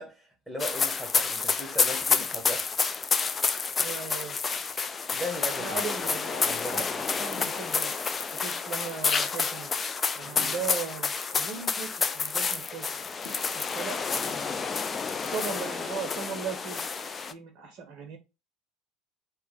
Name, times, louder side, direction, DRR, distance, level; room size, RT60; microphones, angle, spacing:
voice 1, 0.0-2.7 5.1-5.8 6.4-6.8 10.2-10.6, equal, 5° left, 1.0 m, -37 dB
sound 1, 0.6-17.3, left 5 dB, 30° left, 0.3 m, -29 dB
voice 2, 3.8-4.4 5.6-7.9 8.3-9.7 10.1-12.8 13.5-14.8 15.2-16.8 17.3-18.2, right 6 dB, 55° right, 0.7 m, -38 dB
sound 2, 7.4-7.7 10.4-10.7 13.3-13.6, left 2 dB, 45° left, 1.5 m, -45 dB
3.0 x 2.3 x 4.0 m
figure-of-eight pair, 65°, 0 cm